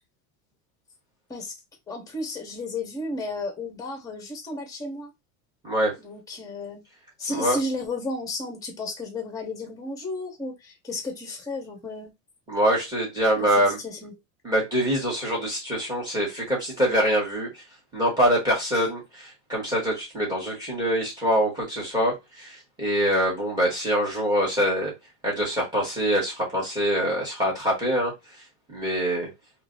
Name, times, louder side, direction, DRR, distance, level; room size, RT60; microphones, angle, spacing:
voice 1, 1.9-5.1 6.0-6.8 7.2-12.1 13.4-13.5 13.8-14.1 18.7-18.8, left 2 dB, 10° left, 1.0 m, -33 dB
voice 2, 12.5-13.8 14.4-17.5 17.9-24.9 25.2-28.1 28.7-29.3, equal, 10° right, 2.0 m, -24 dB
3.8 x 3.2 x 2.6 m
cardioid pair, 170°, 39 cm